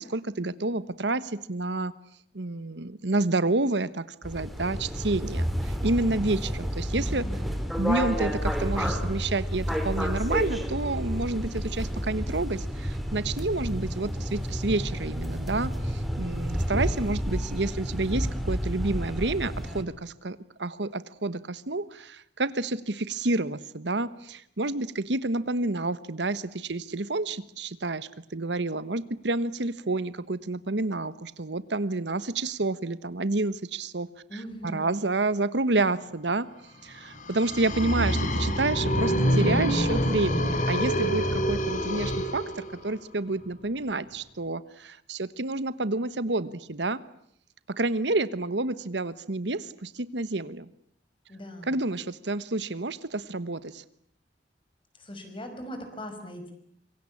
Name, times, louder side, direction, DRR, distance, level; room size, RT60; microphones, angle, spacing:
voice 1, 0.0-1.9 2.3-7.3 7.8-34.1 34.6-36.5 36.8-47.0 47.8-50.7 51.7-53.8, right 2 dB, 80° right, 15 dB, 1.2 m, -29 dB
sound 1, 4.2-19.8, equal, ahead, 3.3 m, -30 dB
voice 2, 6.9-7.6 34.3-35.0 51.3-51.8 55.0-56.5, equal, 30° left, 7 dB, 5.7 m, -40 dB
sound 2, 37.1-43.0, equal, 45° left, 3.2 m, -26 dB
26.0 x 23.5 x 8.6 m, 0.67 s
head